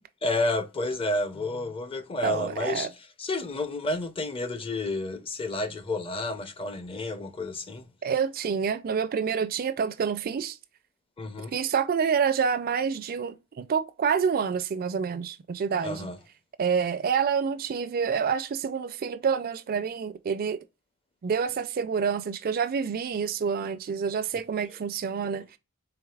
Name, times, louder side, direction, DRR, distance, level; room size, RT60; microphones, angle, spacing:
voice 1, 0.2-2.9 3.2-7.9 11.2-11.6 15.8-16.2, left 2 dB, 25° left, 0.5 m, -30 dB
voice 2, 2.2-2.9 8.0-10.6 11.5-16.1 16.6-20.6 21.2-25.5, right 6 dB, 40° right, 0.4 m, -27 dB
4.7 x 3.6 x 2.3 m
head